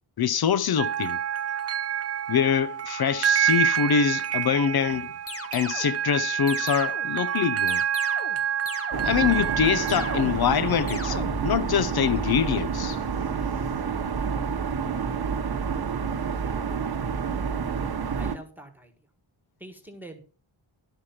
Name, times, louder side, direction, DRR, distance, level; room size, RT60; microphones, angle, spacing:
voice 1, 0.2-1.2 2.3-5.1 5.5-7.8 9.0-13.0, left 8 dB, 50° left, 0.5 m, -24 dB
sound 1, 0.8-11.0, right 9 dB, 35° right, 0.4 m, -28 dB
sound 2, 5.3-5.9 6.5-7.2 7.7-8.4 8.7-9.3 9.9-10.6 10.9-11.6, left 2 dB, 30° left, 1.3 m, -37 dB
sound 3, 8.9-18.4, right 6 dB, 50° right, 1.0 m, -29 dB
voice 2, 18.2-18.9 19.6-20.2, right 1 dB, 5° right, 1.5 m, -43 dB
12.5 x 4.9 x 5.7 m
wide cardioid pair, 135°, 49 cm